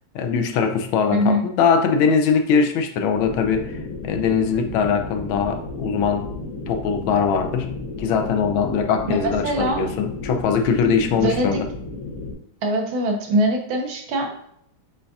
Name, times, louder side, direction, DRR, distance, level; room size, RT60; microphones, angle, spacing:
voice 1, 0.1-6.3 6.7-11.7, left 6 dB, 90° left, 6 dB, 1.4 m, -21 dB
sound 1, 3.1-12.3, left 2 dB, 65° left, 0.9 m, -33 dB
voice 2, 9.2-9.8 11.2-11.6 12.6-14.5, right 1 dB, 85° right, 2 dB, 1.7 m, -22 dB
7.2 x 2.6 x 2.3 m, 0.70 s
omnidirectional pair, 2.2 m